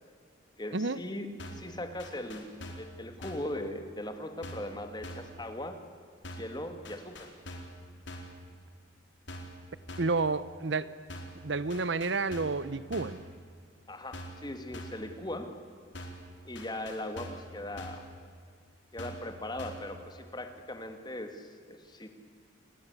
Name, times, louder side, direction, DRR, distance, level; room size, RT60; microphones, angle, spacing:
voice 1, 0.6-2.5 2.8-5.8 6.3-7.3 13.9-15.5 16.4-18.1 18.9-22.1, left 1 dB, 20° left, 7 dB, 2.4 m, -39 dB
sound 1, 1.4-1.7 2.0-2.9 3.2-3.5 4.4-4.7 5.0-5.4 6.2-6.6 6.8-7.8 8.1-8.4 9.3-9.6 9.9-10.2 11.1-11.4 11.7-12.6 12.9-13.2 14.1-14.5 14.7-15.1 15.9-16.3 16.6-17.5 17.8-18.1 19.0-19.3 19.6-19.9, equal, 60° left, 4.3 m, -44 dB
voice 2, 10.0-10.9 11.4-13.2, right 3 dB, 60° right, 16 dB, 0.9 m, -30 dB
28.0 x 21.5 x 8.3 m, 2.2 s
head